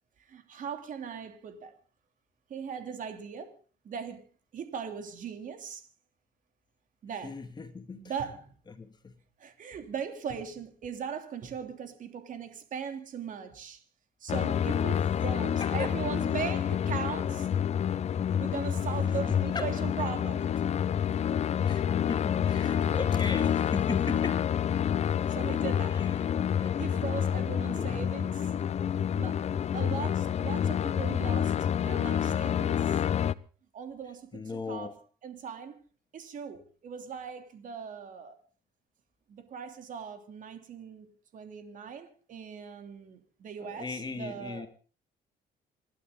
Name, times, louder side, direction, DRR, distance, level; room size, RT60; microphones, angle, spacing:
voice 1, 0.3-1.7 2.5-3.5 3.8-4.2 4.5-5.9 7.0-7.3 7.9-8.5 9.4-13.8 14.2-17.5 18.4-20.5 25.3-26.0 26.6-28.5 29.0-29.5 29.7-33.0 33.7-34.9 35.2-35.8 36.1-38.3 39.3-41.1 41.3-44.7, right 7 dB, 50° right, 3.0 m, -39 dB
voice 2, 7.2-8.1 8.7-9.1 15.6-15.9 16.9-17.0 19.3-19.8 21.7-24.5 25.9-26.3 26.6-26.8 27.7-28.2 34.3-34.9 43.6-44.7, left 5 dB, 25° left, 2.2 m, -37 dB
sound 1, 14.3-33.3, left 9 dB, 40° left, 0.7 m, -28 dB
27.5 x 12.0 x 3.8 m
cardioid pair, 110°, 17 cm